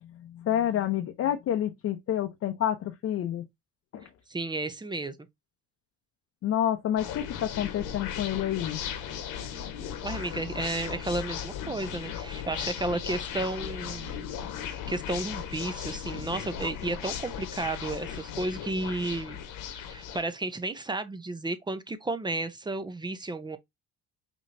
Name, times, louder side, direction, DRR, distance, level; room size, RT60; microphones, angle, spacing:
voice 1, 0.0-3.5 3.9-4.1 6.4-8.8 14.4-14.6, left 11 dB, 50° left, 0.7 m, -29 dB
voice 2, 4.3-5.1 10.0-14.2 14.6-19.4 19.8-23.6, right 2 dB, 15° right, 0.6 m, -33 dB
sound 1, 7.0-20.2, left 9 dB, 80° left, 1.4 m, -37 dB
5.3 x 3.0 x 2.6 m
cardioid pair, 110°, 31 cm